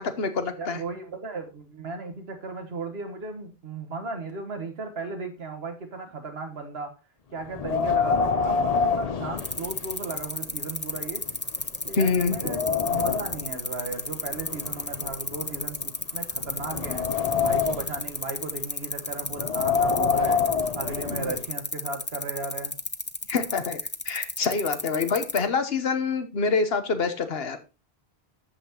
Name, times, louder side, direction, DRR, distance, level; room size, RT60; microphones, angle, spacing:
voice 1, 0.0-0.8 11.9-12.4 21.1-21.4 23.3-23.8 24.0-27.6, left 4 dB, 70° left, 9 dB, 1.2 m, -26 dB
voice 2, 0.6-6.9 7.3-11.2 11.8-17.1 17.4-20.4 20.7-22.8, right 3 dB, 80° right, 5 dB, 1.6 m, -36 dB
Wind, 7.5-10.1 10.5-10.6 11.3-11.4 11.8-13.5 14.3-15.8 16.4-18.0 19.3-21.4, left 5 dB, 45° left, 0.7 m, -26 dB
sound 1, 9.4-25.4, left 2 dB, 20° left, 0.3 m, -32 dB
13.5 x 5.7 x 2.9 m, 0.30 s
omnidirectional pair, 1.0 m